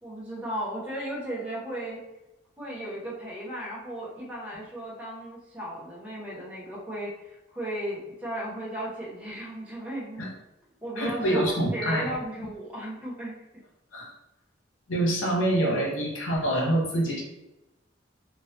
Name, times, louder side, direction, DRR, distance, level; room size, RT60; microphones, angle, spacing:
voice 1, 0.0-2.0 2.6-10.4 10.8-13.4, right 1 dB, 5° right, -7 dB, 0.9 m, -35 dB
voice 2, 11.0-12.1 12.4-12.5 13.9-14.1 14.9-17.2, right 1 dB, 75° left, -1 dB, 0.8 m, -26 dB
2.9 x 2.4 x 3.1 m, 0.97 s
head